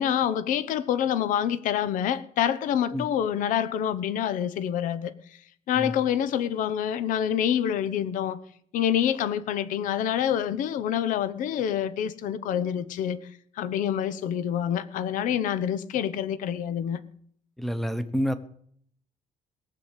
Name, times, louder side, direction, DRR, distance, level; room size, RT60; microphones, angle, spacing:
voice 1, 0.0-5.1 5.7-8.4 8.7-13.2 13.6-17.0, left 9 dB, 75° left, 0.9 m, -27 dB
voice 2, 17.6-18.3, equal, ahead, 0.9 m, -28 dB
18.0 x 7.1 x 8.2 m
cardioid pair, 165°, 14 cm